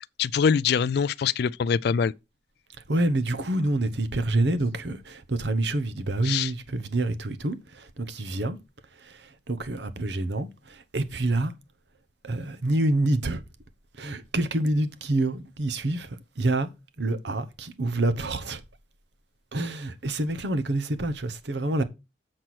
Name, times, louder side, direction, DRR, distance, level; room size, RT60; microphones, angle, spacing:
voice 1, 0.2-2.1 6.2-6.5, left 6 dB, 60° left, 0.3 m, -23 dB
voice 2, 2.9-8.6 9.0-11.5 12.2-13.4 14.0-16.7 17.0-18.6 19.5-21.8, right 2 dB, 70° right, 1.0 m, -27 dB
7.7 x 4.4 x 6.1 m
head